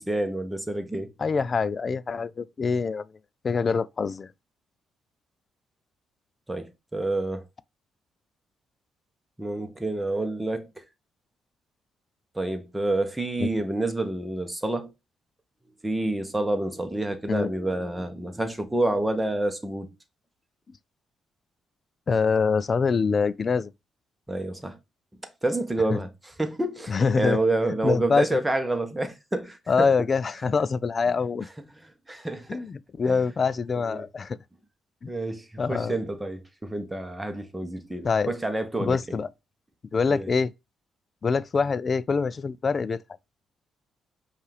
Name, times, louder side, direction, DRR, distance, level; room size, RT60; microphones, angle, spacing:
voice 1, 0.0-1.1 6.5-7.4 9.4-10.8 12.3-14.9 15.8-19.9 24.3-24.8 25.4-29.9 32.1-32.6 33.9-34.0 35.1-39.2 40.1-40.3, right 2 dB, 10° right, 0.9 m, -28 dB
voice 2, 1.2-3.0 3.4-4.3 13.4-13.5 17.3-17.5 22.1-23.7 25.9-26.0 26.9-27.4 27.8-28.4 29.7-31.5 32.5-34.4 35.0-35.1 35.6-36.0 38.0-38.4 38.8-39.3 39.9-40.5 41.2-43.0, left 5 dB, 40° left, 0.3 m, -25 dB
5.4 x 2.4 x 3.3 m
cardioid pair, 90°, 0 cm